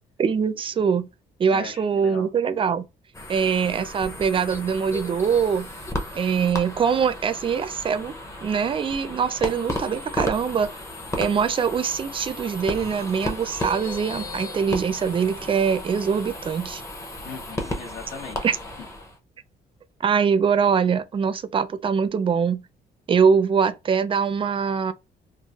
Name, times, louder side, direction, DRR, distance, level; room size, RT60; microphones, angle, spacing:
voice 1, 0.2-1.1 1.4-2.9 3.3-5.7 6.1-8.1 8.4-10.7 11.2-16.8 18.4-18.6 20.0-22.6 23.1-24.9, right 6 dB, 30° right, 0.4 m, -23 dB
voice 2, 1.5-2.3 17.2-18.6, left 5 dB, 75° left, 1.2 m, -39 dB
sound 1, 3.1-19.2, left 1 dB, 15° left, 0.6 m, -34 dB
3.1 x 2.4 x 2.3 m
cardioid pair, 130°, 18 cm